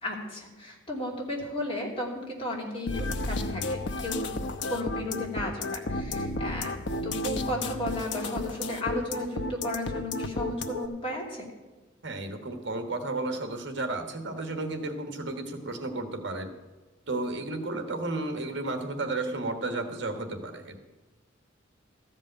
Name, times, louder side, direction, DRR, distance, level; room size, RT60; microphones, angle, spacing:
voice 1, 0.0-4.3 4.7-6.7 7.0-11.5, left 1 dB, 30° left, -2 dB, 2.6 m, -34 dB
sound 1, 2.9-10.9, left 2 dB, 60° left, 0.8 m, -32 dB
voice 2, 12.0-16.5 17.1-20.8, right 2 dB, 65° right, 6 dB, 1.4 m, -33 dB
14.0 x 5.4 x 8.7 m, 1.2 s
head